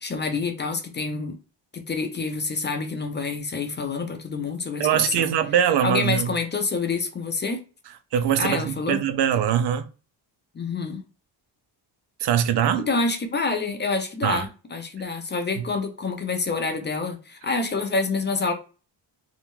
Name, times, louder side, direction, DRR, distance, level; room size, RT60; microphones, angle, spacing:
voice 1, 0.0-1.4 1.7-5.3 5.8-7.6 8.4-9.0 10.5-11.0 12.9-18.5, left 4 dB, 25° left, 0.4 m, -27 dB
voice 2, 4.8-6.3 8.1-9.8 12.2-12.9 14.2-14.5 15.6-15.7, right 9 dB, 60° right, 0.5 m, -22 dB
2.7 x 2.1 x 3.1 m
cardioid pair, 100°, 46 cm